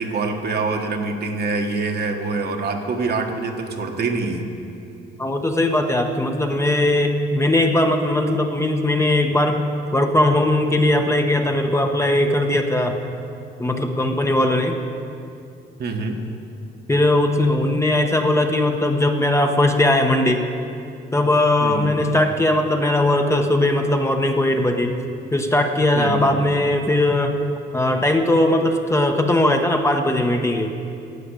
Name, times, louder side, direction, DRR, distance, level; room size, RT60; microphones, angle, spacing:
voice 1, 0.0-4.4 15.8-16.2 21.6-22.0 25.9-26.3, right 3 dB, 55° right, 3 dB, 1.4 m, -25 dB
voice 2, 5.2-9.6 9.9-13.0 13.6-14.8 16.9-20.4 21.1-25.0 25.2-27.4 27.7-30.7, left 1 dB, 15° left, 4 dB, 1.0 m, -19 dB
12.0 x 7.8 x 8.2 m, 2.6 s
cardioid pair, 90°, 20 cm